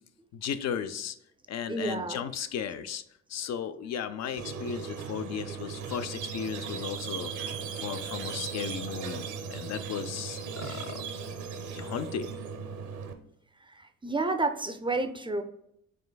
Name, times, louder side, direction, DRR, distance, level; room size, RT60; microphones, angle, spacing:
voice 1, 0.3-1.2 1.5-3.0 3.3-7.3 7.7-11.0 11.7-12.3, left 8 dB, 60° left, 10 dB, 0.4 m, -35 dB
voice 2, 1.7-2.2 10.7-10.8 13.7-15.4, right 2 dB, 15° right, 7 dB, 0.4 m, -30 dB
Squeak, 4.4-13.1, right 6 dB, 80° right, 0.7 m, -37 dB
5.2 x 3.3 x 2.2 m, 0.75 s
cardioid pair, 90°, 30 cm